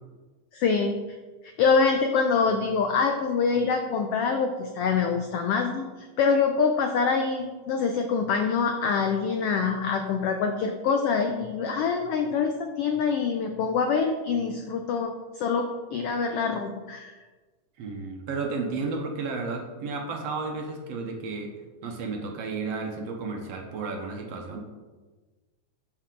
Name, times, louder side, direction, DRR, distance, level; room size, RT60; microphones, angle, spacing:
voice 1, 0.5-1.0 1.6-17.1, left 5 dB, 85° left, 5 dB, 1.3 m, -25 dB
voice 2, 17.8-21.5 21.8-24.6, right 4 dB, 65° right, 2 dB, 2.0 m, -32 dB
12.0 x 5.9 x 3.8 m, 1.3 s
omnidirectional pair, 3.3 m